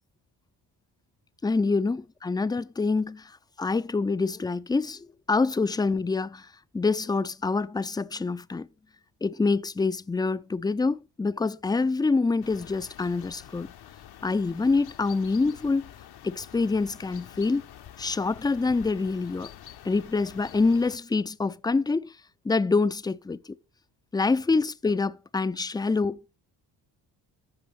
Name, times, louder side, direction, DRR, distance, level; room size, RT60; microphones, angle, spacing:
voice 1, 1.4-3.3 3.6-6.5 6.7-8.7 9.2-13.7 14.2-15.9 16.2-17.6 18.0-19.5 19.8-22.1 22.4-23.5 24.1-26.4, left 3 dB, 10° left, 0.4 m, -26 dB
sound 1, 12.4-21.0, left 10 dB, 65° left, 0.9 m, -47 dB
14.5 x 5.1 x 3.3 m
cardioid pair, 85°, 42 cm